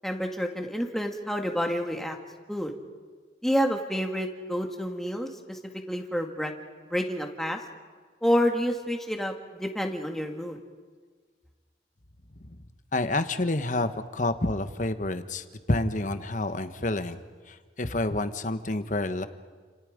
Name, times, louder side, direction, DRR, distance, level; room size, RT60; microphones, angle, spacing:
voice 1, 0.0-2.2 2.5-2.7 3.4-5.6 5.9-6.5 6.9-7.6 8.2-10.6, equal, ahead, 3 dB, 2.0 m, -28 dB
voice 2, 12.9-17.2 17.5-19.3, left 2 dB, 45° left, 10 dB, 1.2 m, -29 dB
30.0 x 27.5 x 5.2 m, 1.5 s
head